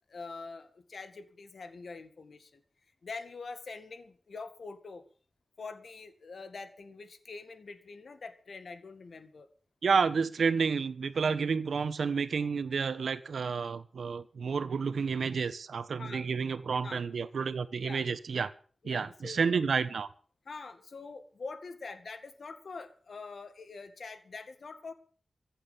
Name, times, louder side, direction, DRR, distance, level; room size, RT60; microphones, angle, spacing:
voice 1, 0.1-2.6 3.0-5.0 5.6-9.5 12.7-12.9 16.0-16.3 16.7-17.0 17.8-18.1 18.8-19.4 20.5-24.9, left 4 dB, 65° left, 9 dB, 2.0 m, -44 dB
voice 2, 9.8-18.5 18.8-20.1, right 5 dB, 85° right, 12 dB, 1.2 m, -30 dB
15.0 x 8.9 x 8.6 m, 0.43 s
wide cardioid pair, 110°, 0 cm